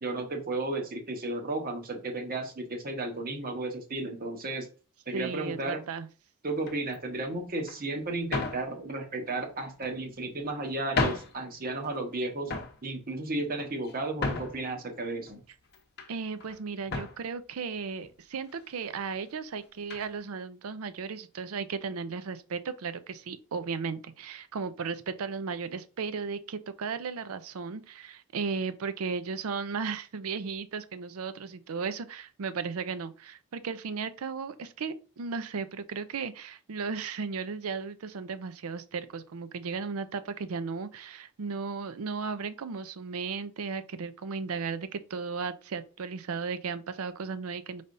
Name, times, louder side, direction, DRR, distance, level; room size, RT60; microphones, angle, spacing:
voice 1, 0.0-4.7 5.1-5.8 6.4-12.5 12.8-15.4, right 2 dB, 40° right, 0.9 m, -33 dB
voice 2, 5.1-6.1 16.1-47.8, right 5 dB, 70° right, 0.5 m, -35 dB
sound 1, 6.6-7.0 7.7-7.8 8.3-8.7 9.6-10.2 10.7-10.8 11.0-11.4 11.8-12.2 12.4-12.8 13.4-14.7 15.3-16.1 16.4-16.6 16.9-17.2 18.0-18.1 18.5-18.6 19.9-20.1, left 3 dB, 45° left, 0.7 m, -33 dB
5.4 x 3.3 x 2.6 m
head